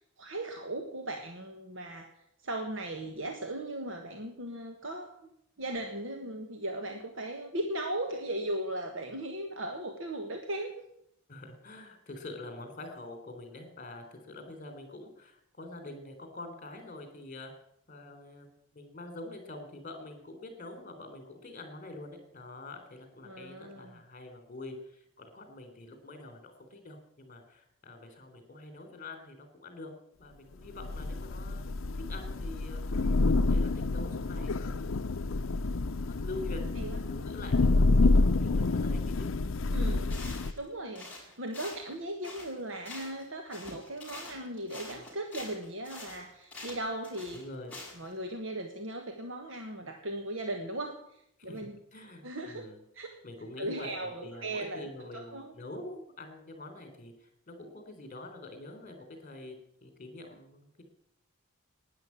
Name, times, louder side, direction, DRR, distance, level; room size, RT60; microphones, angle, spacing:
voice 1, 0.2-2.1 2.4-5.3 5.6-10.7 23.3-24.0 36.8-37.0 39.7-40.2 40.6-47.4 48.0-51.8 52.2-52.7 52.9-53.2 53.6-55.5, right 1 dB, 65° right, 4 dB, 1.6 m, -37 dB
voice 2, 11.3-17.5 17.9-29.9 30.2-31.7 31.9-35.1 36.1-39.3 47.3-47.8 51.4-52.8 53.2-59.5 59.8-60.8, left 2 dB, 40° left, 7 dB, 3.7 m, -46 dB
Thunder / Rain, 30.8-40.5, left 2 dB, 75° left, 0.6 m, -28 dB
sound 1, 40.1-40.7 40.9-43.3 43.5-48.1, left 2 dB, 5° left, 6.5 m, -46 dB
12.5 x 10.5 x 9.7 m, 0.75 s
head